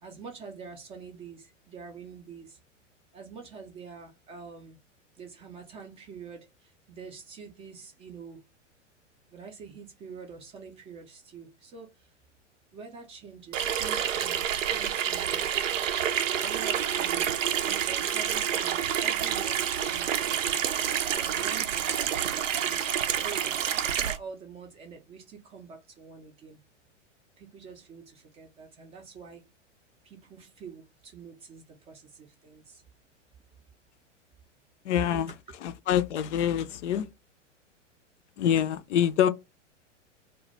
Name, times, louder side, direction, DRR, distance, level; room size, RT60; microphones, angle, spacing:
voice 1, 0.0-2.6 3.1-4.8 5.1-8.4 9.3-12.1 12.7-15.7 16.4-17.3 17.7-20.8 21.1-26.6 27.4-29.4 30.0-32.8 35.1-35.3, right 5 dB, 15° right, 0.4 m, -46 dB
Water tap faucet / Sink (filling or washing), 13.5-24.2, right 9 dB, 85° right, 0.5 m, -28 dB
voice 2, 34.8-35.3 35.6-37.1 38.4-39.3, left 9 dB, 65° left, 0.5 m, -25 dB
2.2 x 2.1 x 3.8 m
hypercardioid pair, 105°, 38 cm